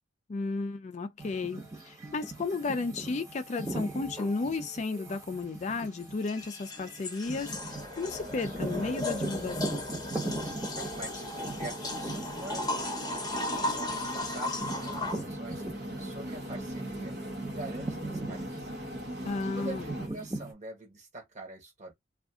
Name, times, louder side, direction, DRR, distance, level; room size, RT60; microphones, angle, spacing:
voice 1, 0.3-9.9 19.2-19.9, left 3 dB, 35° left, 0.4 m, -33 dB
sound 1, 1.2-16.3 16.7-20.5, right 2 dB, 15° right, 1.0 m, -40 dB
sound 2, 4.2-4.3 6.0-15.2, left 2 dB, 20° left, 0.9 m, -36 dB
sound 3, 7.2-20.1, equal, 55° right, 0.9 m, -40 dB
voice 2, 10.8-13.3 13.6-15.6 16.0-17.2 17.4-18.7 19.5-21.9, right 2 dB, 35° right, 1.5 m, -45 dB
2.5 x 2.4 x 3.6 m
head